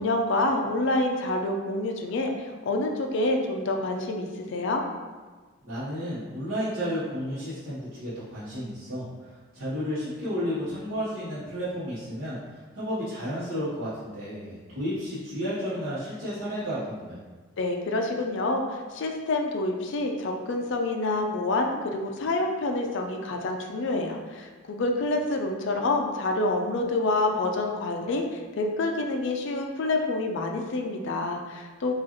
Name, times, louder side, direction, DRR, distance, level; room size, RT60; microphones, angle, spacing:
voice 1, 0.0-4.8 17.6-31.9, left 2 dB, 55° left, 3 dB, 0.4 m, -27 dB
voice 2, 5.6-17.2, equal, 70° right, -12 dB, 1.0 m, -32 dB
4.8 x 2.4 x 2.9 m, 1.4 s
head